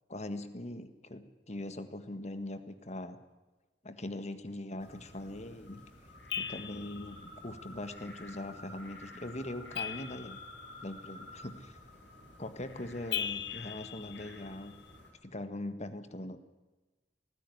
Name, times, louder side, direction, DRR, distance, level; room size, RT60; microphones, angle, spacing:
voice 1, 0.1-3.2 3.8-5.8 6.3-10.4 10.8-11.8 12.4-14.7 15.2-16.4, left 1 dB, 40° left, 10 dB, 1.7 m, -41 dB
sound 1, 4.8-15.1, left 1 dB, 85° left, 7.1 m, -51 dB
sound 2, 6.3-7.1 9.7-10.8 13.1-14.8, left 9 dB, 70° left, 1.3 m, -39 dB
19.0 x 15.5 x 9.6 m, 1.2 s
head